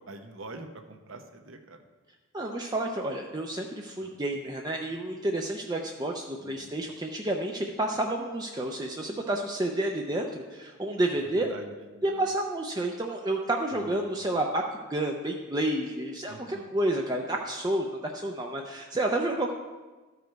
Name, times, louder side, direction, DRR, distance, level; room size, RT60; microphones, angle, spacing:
voice 1, 0.0-1.8 4.0-4.2 6.4-6.7 11.2-12.2 13.7-14.3 16.3-16.7, right 2 dB, 65° right, 6 dB, 0.8 m, -45 dB
voice 2, 2.3-11.5 12.0-14.6 14.9-19.5, right 1 dB, 20° right, 1 dB, 0.5 m, -30 dB
13.0 x 5.0 x 4.6 m, 1.3 s
head